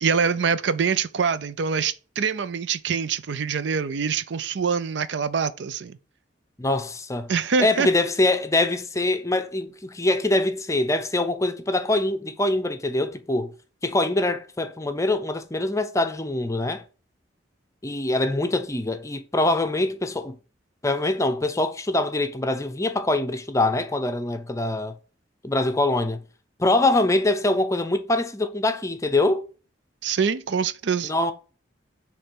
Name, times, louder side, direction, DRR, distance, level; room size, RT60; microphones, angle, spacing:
voice 1, 0.0-6.0 7.3-7.9 30.0-31.1, right 6 dB, 70° right, 0.5 m, -25 dB
voice 2, 6.6-7.3 7.6-13.5 13.8-16.8 17.8-20.4 20.8-25.0 25.4-26.2 26.6-29.4 31.0-31.3, left 2 dB, 15° left, 0.6 m, -24 dB
6.5 x 3.3 x 6.0 m
head